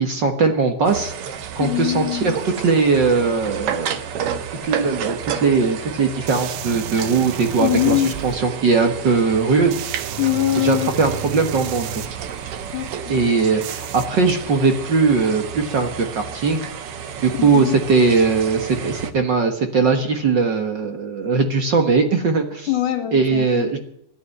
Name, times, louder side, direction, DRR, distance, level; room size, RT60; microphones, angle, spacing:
voice 1, 0.0-3.9 4.6-8.0 8.2-9.7 10.6-12.0 13.1-16.6 17.2-22.7 23.1-23.8, right 4 dB, 50° right, 5 dB, 1.5 m, -19 dB
sound 1, 0.8-19.1, right 7 dB, 65° right, 1.5 m, -31 dB
voice 2, 1.6-2.4 7.6-8.1 10.2-10.9 12.7-13.3 17.4-17.8 22.7-23.7, left 13 dB, 80° left, 6 dB, 3.4 m, -23 dB
sound 2, 6.3-8.4 9.7-13.0 13.6-14.1, right 9 dB, 85° right, 2.4 m, -33 dB
14.0 x 12.0 x 7.8 m, 0.71 s
omnidirectional pair, 3.6 m